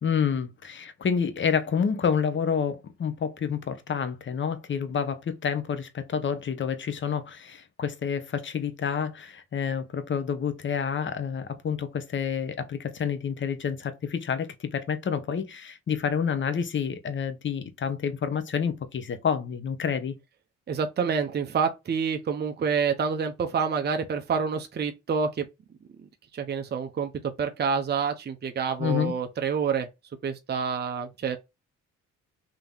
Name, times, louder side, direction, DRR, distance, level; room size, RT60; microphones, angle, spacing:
voice 1, 0.0-20.1 28.8-29.2, left 7 dB, 40° left, 0.9 m, -28 dB
voice 2, 20.7-25.5 26.3-27.1 27.4-29.9 30.2-31.4, right 6 dB, 35° right, 0.7 m, -27 dB
3.7 x 2.9 x 3.7 m
cardioid pair, 90°, 30 cm